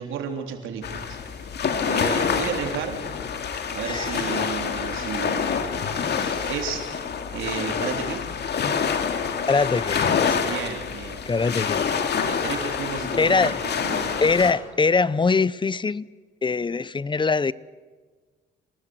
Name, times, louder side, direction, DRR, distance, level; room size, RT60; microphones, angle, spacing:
voice 1, 0.0-1.5 1.9-3.0 3.7-5.9 6.5-6.8 7.3-8.3 10.4-11.4 12.2-14.3, right 7 dB, 85° right, 3.7 m, -33 dB
sound 1, 0.8-14.5, left 6 dB, 60° left, 2.4 m, -27 dB
voice 2, 6.1-6.5 9.5-10.5 11.3-11.8 13.2-13.6 14.2-16.1 16.4-17.5, left 4 dB, 25° left, 0.7 m, -23 dB
28.0 x 19.0 x 8.0 m
cardioid pair, 90°, 20 cm